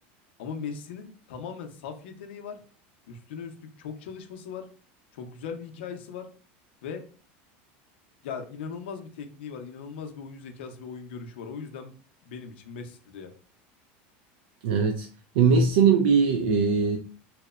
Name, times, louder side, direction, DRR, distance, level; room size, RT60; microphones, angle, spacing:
voice 1, 0.4-2.6 3.1-4.7 5.1-6.3 6.8-7.0 8.2-11.9 12.2-13.3, left 6 dB, 85° left, 0.5 m, -39 dB
voice 2, 14.6-15.1 15.4-17.0, right 5 dB, 80° right, 0.3 m, -20 dB
2.9 x 2.0 x 2.3 m
supercardioid pair, 160°, 6 cm